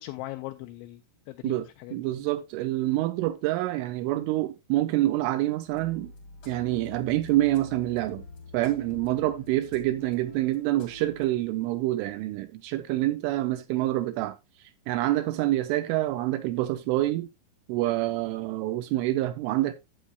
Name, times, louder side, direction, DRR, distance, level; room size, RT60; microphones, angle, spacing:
voice 1, 0.0-2.1, left 17 dB, 85° left, 2.6 m, -40 dB
voice 2, 1.9-6.1 6.5-8.2 8.5-14.4 14.9-17.3 17.7-19.7, right 16 dB, 80° right, 3.0 m, -27 dB
sound 1, 5.7-11.3, left 4 dB, 55° left, 1.4 m, -46 dB
11.5 x 7.9 x 2.3 m
omnidirectional pair, 5.9 m